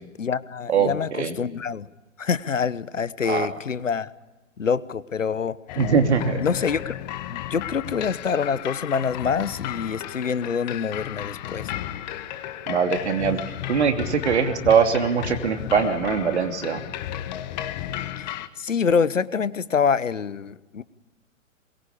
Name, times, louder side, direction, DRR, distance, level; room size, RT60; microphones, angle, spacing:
voice 1, 0.2-1.9 2.2-4.1 4.6-5.6 6.4-6.9 7.3-11.7 18.2-20.8, left 6 dB, 70° left, 18 dB, 1.1 m, -26 dB
voice 2, 0.7-1.3 3.2-3.5 5.8-6.4 12.7-13.4 13.7-16.8, right 6 dB, 55° right, 7 dB, 3.0 m, -22 dB
sound 1, 5.7-18.5, left 12 dB, 35° left, 1.5 m, -34 dB
23.0 x 21.5 x 8.6 m, 1.1 s
figure-of-eight pair, 120°, 40 cm